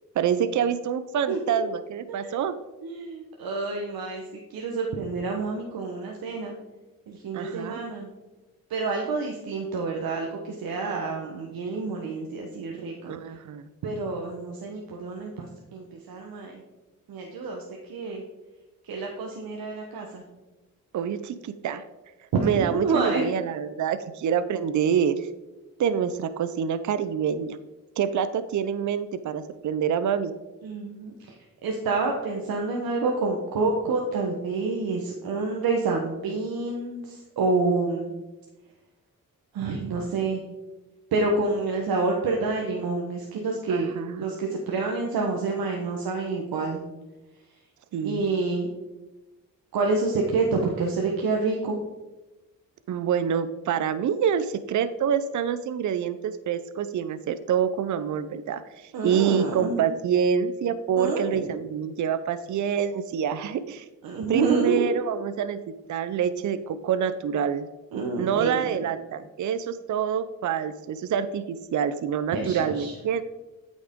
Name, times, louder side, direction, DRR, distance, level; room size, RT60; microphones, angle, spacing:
voice 1, 0.2-2.5 7.3-7.8 13.1-13.7 20.9-21.8 22.4-25.3 25.8-27.6 28.0-30.3 43.7-44.2 47.9-48.2 52.9-63.9 64.3-65.6 65.9-67.7 68.2-73.2, right 8 dB, 55° right, 12 dB, 0.5 m, -26 dB
voice 2, 1.3-1.6 2.1-2.3 2.8-6.5 7.1-8.1 8.7-13.1 13.8-16.6 17.1-18.2 18.8-20.2 22.3-23.3 30.6-31.4 31.6-38.1 39.5-40.4 41.1-43.9 44.2-46.8 48.0-48.7 49.7-51.8 58.9-59.8 61.0-61.6 64.0-64.8 67.9-68.8 72.3-72.9, right 3 dB, 80° right, 0 dB, 1.1 m, -28 dB
8.5 x 6.3 x 3.6 m, 1.1 s
cardioid pair, 60°, 35 cm